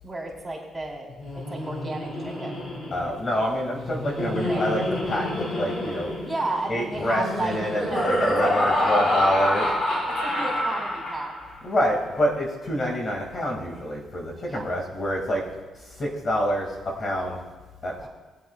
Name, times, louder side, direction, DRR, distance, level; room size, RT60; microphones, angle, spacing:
voice 1, 0.0-1.1 1.5-2.6 4.4-4.7 5.1-5.3 6.2-7.6 7.9-11.3 14.4-14.7, right 2 dB, 10° right, -4 dB, 3.8 m, -33 dB
Laughter, 1.1-11.6, left 1 dB, 55° left, 3.7 m, -27 dB
voice 2, 2.9-6.1 6.7-9.7 11.6-15.4 15.8-17.4 17.8-18.1, equal, 40° left, 0 dB, 2.2 m, -27 dB
21.0 x 8.1 x 2.4 m, 1.2 s
cardioid pair, 90°, 0 cm